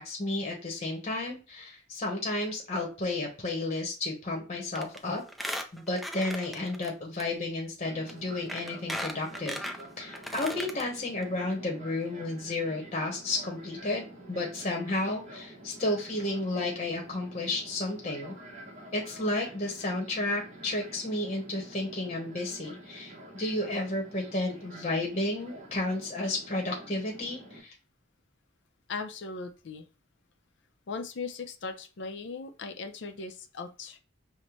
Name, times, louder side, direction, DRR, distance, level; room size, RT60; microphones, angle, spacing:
voice 1, 0.0-5.2 5.7-9.6 10.0-18.3 18.9-27.7, left 2 dB, 35° left, 0 dB, 1.0 m, -32 dB
Squeak, 4.7-5.0 5.3-6.9 7.2-7.3 8.1-8.2 8.5-10.8 11.2-11.3 11.5-11.6, equal, ahead, 0.4 m, -37 dB
Fixed-wing aircraft airplane, 7.8-27.6, right 1 dB, 40° right, 1.0 m, -48 dB
voice 2, 28.9-29.8 30.9-34.0, left 4 dB, 65° left, 6 dB, 0.5 m, -38 dB
5.3 x 2.2 x 3.0 m, 0.33 s
head